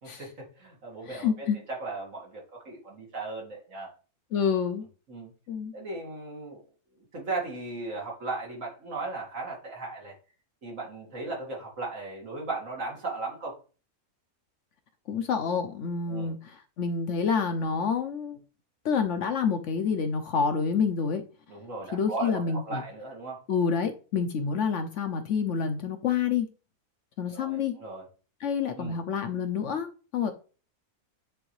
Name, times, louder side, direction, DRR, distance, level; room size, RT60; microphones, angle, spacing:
voice 1, 0.0-3.9 5.1-5.3 5.7-6.6 7.1-10.1 10.6-13.6 16.1-16.3 21.5-23.4 27.3-28.0 28.8-29.0, right 3 dB, 60° right, 2.2 m, -37 dB
voice 2, 1.0-1.6 4.3-4.9 5.5-5.7 15.1-18.4 18.8-21.2 21.9-22.8 23.5-26.5 27.2-27.8 28.4-30.3, left 6 dB, 65° left, 0.9 m, -28 dB
8.9 x 3.8 x 3.1 m
omnidirectional pair, 1.5 m